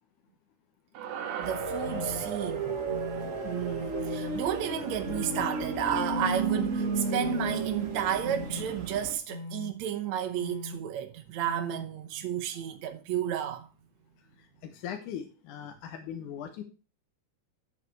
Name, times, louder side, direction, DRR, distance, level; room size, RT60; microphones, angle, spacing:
sound 1, 0.9-5.4, right 8 dB, 85° right, 2.8 m, -42 dB
sound 2, 1.4-9.1, right 3 dB, 40° right, 1.1 m, -33 dB
voice 1, 1.4-2.8 3.4-13.7, right 10 dB, 65° right, 2.2 m, -32 dB
sound 3, 1.8-2.2 2.9-3.3 3.9-4.3 5.0-5.4 6.1-6.5 7.1-7.5 8.2-8.6 9.3-9.7 10.3-10.8 11.4-11.8, left 2 dB, 55° left, 3.5 m, -40 dB
voice 2, 14.4-16.6, left 9 dB, 75° left, 2.5 m, -40 dB
9.8 x 7.4 x 4.6 m
omnidirectional pair, 3.6 m